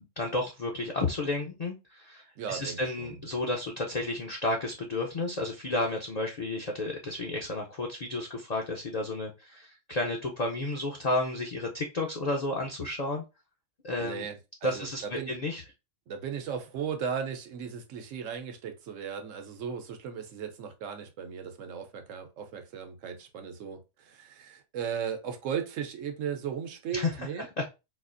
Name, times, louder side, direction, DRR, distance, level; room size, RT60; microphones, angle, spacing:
voice 1, 0.0-13.2 13.8-14.3 14.6-15.6 26.9-27.1 27.6-27.7, left 2 dB, 45° left, 0.5 m, -32 dB
voice 2, 2.4-3.2 14.0-15.3 16.1-27.5, right 7 dB, 70° right, 1.0 m, -36 dB
4.1 x 2.4 x 2.5 m
omnidirectional pair, 1.4 m